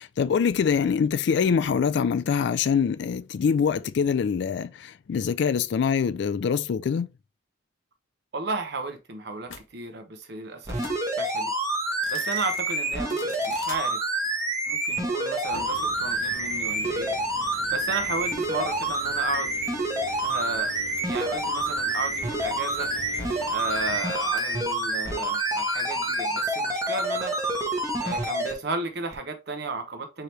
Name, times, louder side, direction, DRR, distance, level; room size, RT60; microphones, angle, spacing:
voice 1, 0.0-7.1, left 6 dB, 65° left, 0.3 m, -24 dB
voice 2, 8.3-10.8 11.2-11.5 12.1-14.0 14.7-17.2 17.7-19.5 20.2-20.7 21.0-22.9 23.5-27.3 28.0-30.2, right 3 dB, 60° right, 0.9 m, -34 dB
sound 1, 9.5-9.6 10.6-11.0 11.9-12.6 13.1-13.8 15.4-26.4, left 2 dB, 90° left, 0.9 m, -41 dB
sound 2, 10.7-28.5 29.1-29.2, right 2 dB, 15° right, 1.0 m, -28 dB
4.7 x 3.1 x 3.2 m
head